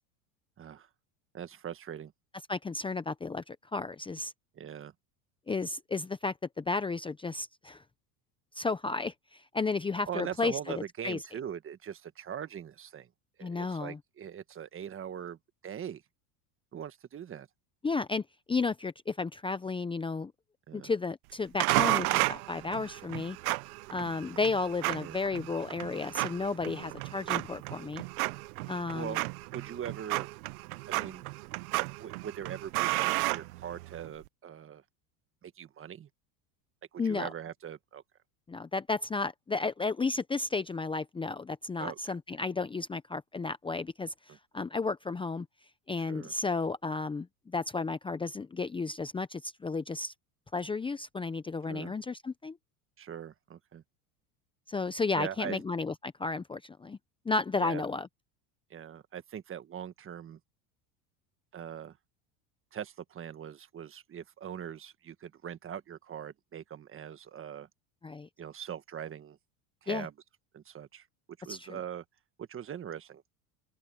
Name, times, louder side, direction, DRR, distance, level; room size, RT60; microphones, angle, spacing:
voice 1, 0.6-0.9 1.3-2.1 4.5-4.9 10.1-13.1 13.4-15.4 15.6-16.0 16.7-17.5 20.7-20.9 25.0-25.2 26.7-27.0 28.9-29.2 29.5-30.3 30.9-31.2 32.0-34.8 35.4-36.1 36.9-38.0 41.8-42.0 44.3-44.4 46.0-46.3 51.7-51.9 53.0-53.8 55.2-55.6 57.6-57.8 58.7-60.4 61.5-62.0 62.7-67.7 68.4-69.4 69.8-70.1 70.5-71.1 71.4-72.0 72.4-73.2, right 9 dB, 30° right, 1.4 m, -41 dB
voice 2, 2.5-4.3 5.5-7.8 8.5-11.2 13.4-14.0 17.8-20.3 20.7-23.4 23.9-28.0 28.7-29.2 37.0-37.3 38.5-45.5 45.9-47.3 47.5-50.1 50.5-52.6 54.7-57.0 57.3-58.1 68.0-68.3 69.9-70.1 71.5-71.7, left 3 dB, 10° left, 0.7 m, -33 dB
sound 1, 21.6-34.1, right 22 dB, 85° right, 0.8 m, -33 dB
open air
supercardioid pair, 120°, 43 cm